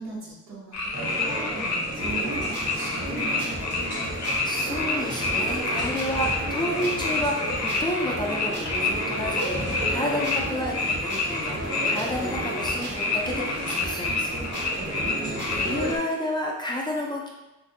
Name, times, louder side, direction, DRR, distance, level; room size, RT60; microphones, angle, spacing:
voice 1, 0.0-3.9 15.0-15.4, right 3 dB, 65° right, -4 dB, 0.8 m, -39 dB
sound 1, 0.7-10.4 10.7-16.0, left 3 dB, 70° left, 0.5 m, -28 dB
sound 2, 0.9-15.9, right 1 dB, 80° right, 1.3 m, -35 dB
sound 3, 2.0-15.9, right 1 dB, 40° right, 0.6 m, -36 dB
voice 2, 3.9-15.1 15.5-17.3, left 1 dB, 15° left, -3 dB, 0.3 m, -31 dB
2.5 x 2.0 x 2.6 m, 1.0 s
cardioid pair, 85°, 29 cm